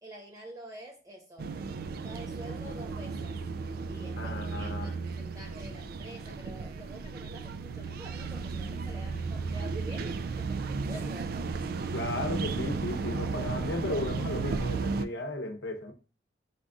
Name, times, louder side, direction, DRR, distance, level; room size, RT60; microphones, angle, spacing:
voice 1, 0.0-1.5 1.9-3.4 3.7-11.5, right 1 dB, 20° right, 1.1 m, -48 dB
sound 1, 1.4-15.1, right 4 dB, 55° right, 0.3 m, -34 dB
voice 2, 4.2-4.9 11.9-15.9, left 2 dB, 70° left, 0.8 m, -35 dB
5.1 x 2.5 x 3.4 m
head